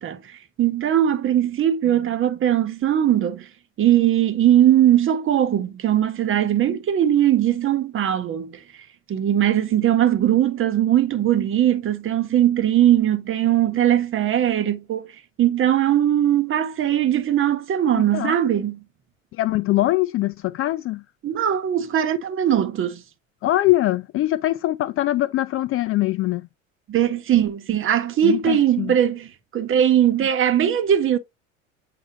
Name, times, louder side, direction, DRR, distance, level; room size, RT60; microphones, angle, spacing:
voice 1, 0.0-3.5 3.8-8.6 9.1-15.1 15.4-18.8 21.2-23.0 26.9-31.2, right 11 dB, 30° right, 1.2 m, -20 dB
voice 2, 17.9-18.3 19.4-21.0 23.4-26.4 28.2-28.9, left 16 dB, 35° left, 0.6 m, -22 dB
7.8 x 4.8 x 2.9 m
figure-of-eight pair, 75°, 40 cm